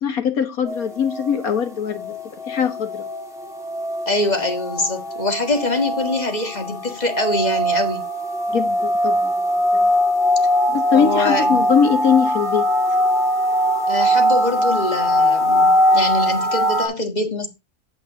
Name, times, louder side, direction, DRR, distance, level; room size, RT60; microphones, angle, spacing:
voice 1, 0.0-3.0 8.5-9.5 9.7-9.9 10.7-12.7, left 7 dB, 80° left, 1.9 m, -21 dB
sound 1, 0.7-16.9, equal, ahead, 2.8 m, -21 dB
voice 2, 4.0-8.0 10.9-11.6 13.9-17.5, left 2 dB, 30° left, 1.7 m, -24 dB
8.8 x 7.3 x 3.8 m
omnidirectional pair, 1.5 m